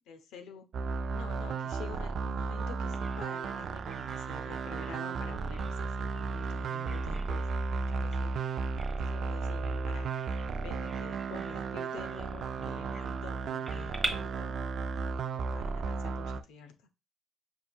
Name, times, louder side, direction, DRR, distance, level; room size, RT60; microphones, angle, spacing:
voice 1, 0.1-0.7 1.1-7.5 7.9-8.5 8.9-10.1 10.4-14.6 15.3-16.9, left 5 dB, 90° left, 0.7 m, -48 dB
sound 1, 0.7-16.4, right 4 dB, 65° right, 0.3 m, -34 dB
Bird vocalization bird call bird song, 2.9-14.1, equal, 5° left, 1.0 m, -46 dB
5.6 x 2.6 x 2.2 m
cardioid pair, 90°, 0 cm